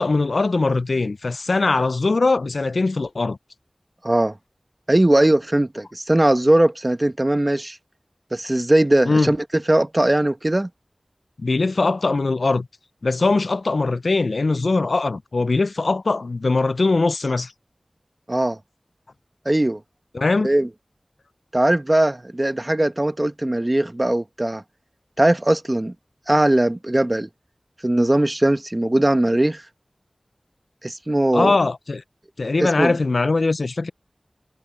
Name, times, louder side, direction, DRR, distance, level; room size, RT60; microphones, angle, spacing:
voice 1, 0.0-3.4 9.1-9.3 11.4-12.7 13.0-17.5 20.1-20.5 31.3-32.0 32.4-33.9, left 3 dB, 85° left, 0.4 m, -21 dB
voice 2, 4.0-4.3 4.9-7.8 8.3-9.4 9.7-10.7 18.3-18.6 19.4-19.8 20.4-20.7 21.5-24.6 25.2-25.9 26.3-27.3 27.8-29.6 30.8-31.6 32.6-32.9, right 1 dB, 30° right, 1.2 m, -19 dB
wide cardioid pair, 55°, 0 cm